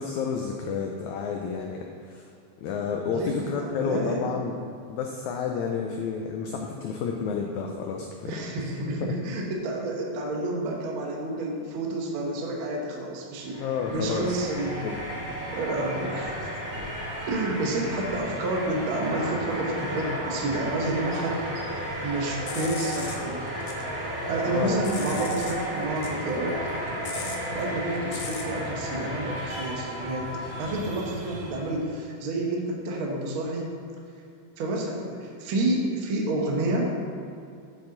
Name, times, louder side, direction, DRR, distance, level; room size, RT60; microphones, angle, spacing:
voice 1, 0.0-2.3 2.6-4.6 4.9-8.6 9.0-9.1 13.6-14.3 14.8-15.0 24.5-24.8 25.1-25.2, left 6 dB, 85° left, 2 dB, 1.6 m, -30 dB
voice 2, 3.1-4.3 8.2-14.8 15.5-16.5 17.3-21.4 22.0-23.5 24.2-33.7 34.6-36.9, right 2 dB, 75° right, 0 dB, 1.2 m, -29 dB
sound 1, 13.4-31.9, right 1 dB, 60° right, 3.0 m, -34 dB
sound 2, 22.3-23.8 24.2-25.6 25.9-28.6, left 6 dB, 70° left, 1.9 m, -40 dB
7.9 x 7.0 x 3.9 m, 2.5 s
omnidirectional pair, 4.0 m